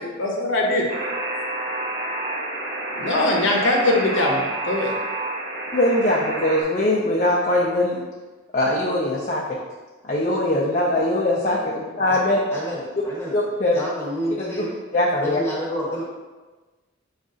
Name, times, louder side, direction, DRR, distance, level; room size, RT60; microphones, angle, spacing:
voice 1, 0.2-0.8 3.0-4.9, left 1 dB, 80° left, -1 dB, 0.7 m, -21 dB
Alarm, 0.9-6.6, right 2 dB, 50° right, 1.1 m, -29 dB
voice 2, 5.7-8.0 8.5-9.4 10.1-12.4 13.3-13.7 14.6-15.4, left 1 dB, 40° left, -4 dB, 0.5 m, -21 dB
voice 3, 12.5-13.4 13.7-14.8 15.2-16.0, equal, 15° left, -5 dB, 0.9 m, -29 dB
5.1 x 2.4 x 3.8 m, 1.3 s
head